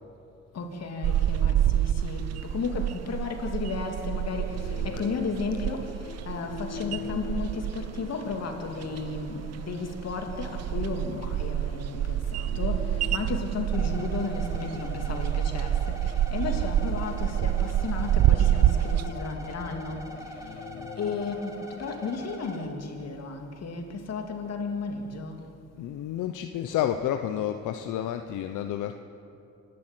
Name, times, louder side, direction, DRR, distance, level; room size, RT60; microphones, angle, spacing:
voice 1, 0.5-5.9 6.3-16.0 16.3-20.1 21.0-25.4, left 4 dB, 55° left, 3 dB, 2.8 m, -34 dB
sound 1, 1.0-19.1, right 12 dB, 55° right, 0.6 m, -28 dB
sound 2, 3.6-22.3, left 8 dB, 35° left, 0.8 m, -45 dB
sound 3, 13.7-22.7, equal, 10° right, 2.8 m, -43 dB
voice 2, 25.8-28.9, left 11 dB, 85° left, 7 dB, 0.9 m, -30 dB
26.5 x 12.0 x 9.2 m, 2.7 s
cardioid pair, 90°, 30 cm